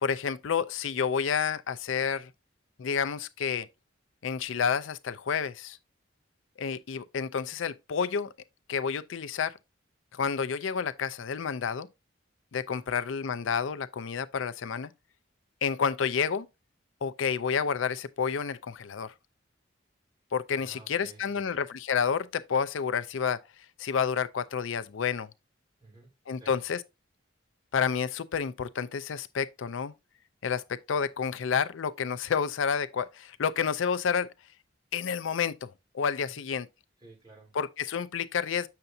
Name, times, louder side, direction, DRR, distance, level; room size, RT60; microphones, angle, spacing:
voice 1, 0.0-2.3 2.8-3.7 4.2-5.8 6.6-8.3 8.7-9.5 10.1-11.9 12.5-14.9 15.6-16.5 17.0-19.1 20.3-23.4 23.8-25.3 26.3-26.8 27.7-29.9 30.4-34.3 34.9-35.7 35.9-36.7 37.5-38.7, left 6 dB, 90° left, 0.5 m, -30 dB
voice 2, 12.7-13.0 20.5-21.6 25.8-26.6 36.2-36.4 37.0-37.5, right 2 dB, 25° right, 3.1 m, -54 dB
6.9 x 6.7 x 2.6 m
head